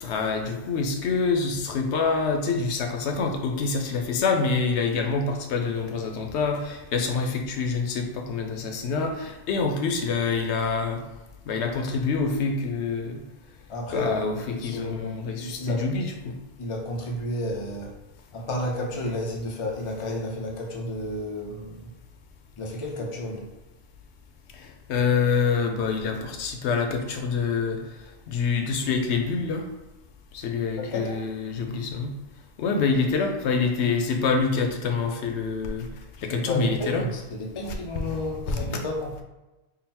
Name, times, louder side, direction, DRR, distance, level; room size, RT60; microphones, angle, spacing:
voice 1, 0.0-11.0 11.5-13.2 13.9-16.4 24.5-27.8 28.3-29.6 30.3-32.1 32.6-35.9 36.2-37.1 38.1-38.2 38.5-38.8, left 4 dB, 90° left, 4 dB, 0.9 m, -26 dB
voice 2, 13.7-15.8 16.6-17.9 18.3-21.9 22.6-23.4 30.8-31.2 36.3-39.1, left 1 dB, 35° left, 0 dB, 0.6 m, -31 dB
3.9 x 2.1 x 4.1 m, 1.0 s
omnidirectional pair, 1.1 m